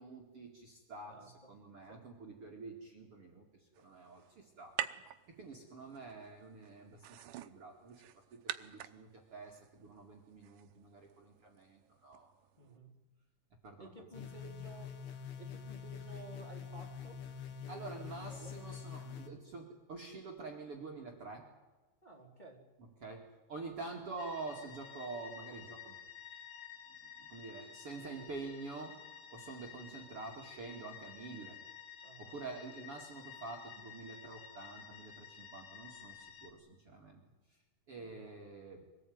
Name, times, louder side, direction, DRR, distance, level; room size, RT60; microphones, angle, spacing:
voice 1, 0.0-4.8 5.3-12.3 12.6-12.7 13.6-13.9 14.1-14.2 17.7-21.5 22.8-26.0 27.2-29.0 29.3-31.6 32.2-37.2 37.9-38.8, right 3 dB, 40° right, 1 dB, 2.7 m, -47 dB
voice 2, 1.1-1.5 1.9-2.1 12.6-13.0 13.8-14.9 15.4-17.2 17.6-18.5 22.0-22.6 32.0-32.4 32.8-32.9 38.0-38.2, right 2 dB, 10° left, 0 dB, 3.2 m, -54 dB
sound 1, 3.7-12.8, right 13 dB, 75° right, 2.0 m, -48 dB
sound 2, 14.1-19.3, left 7 dB, 70° left, 3.9 m, -46 dB
sound 3, 24.2-36.5, left 8 dB, 45° left, 2.5 m, -52 dB
24.0 x 18.5 x 9.5 m, 1.2 s
omnidirectional pair, 4.8 m